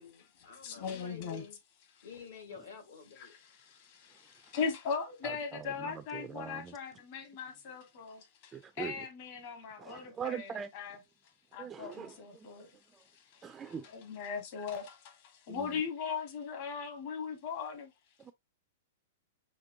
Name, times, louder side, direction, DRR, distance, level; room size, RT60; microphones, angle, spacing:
voice 1, 0.0-1.6 2.0-3.4, left 6 dB, 80° left, 2.6 m, -50 dB
voice 2, 0.6-1.5 1.9-2.1 3.2-11.0 11.5-12.8 13.1-17.9, left 6 dB, 45° left, 1.3 m, -39 dB
voice 3, 5.2-6.8 8.5-9.1 9.8-10.7 11.6-12.7 12.9-13.0 13.4-13.9 15.5-15.8 18.2-18.3, right 7 dB, 15° right, 0.3 m, -42 dB
6.6 x 3.0 x 2.6 m
hypercardioid pair, 155°, 0 cm